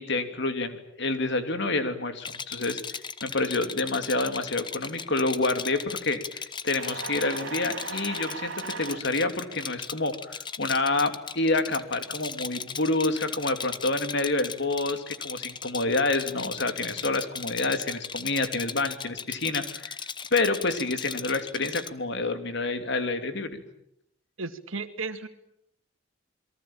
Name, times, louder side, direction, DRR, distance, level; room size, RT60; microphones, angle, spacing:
voice 1, 0.0-2.8 3.2-20.0 20.3-23.6, left 2 dB, 60° left, 8 dB, 3.0 m, -28 dB
Rattle, 2.2-21.9, left 6 dB, 25° left, 1.0 m, -37 dB
sound 1, 6.8-9.0, right 5 dB, 65° right, 2.9 m, -37 dB
voice 2, 24.4-25.3, right 4 dB, 80° right, 8 dB, 2.3 m, -34 dB
28.5 x 22.5 x 8.9 m, 0.76 s
head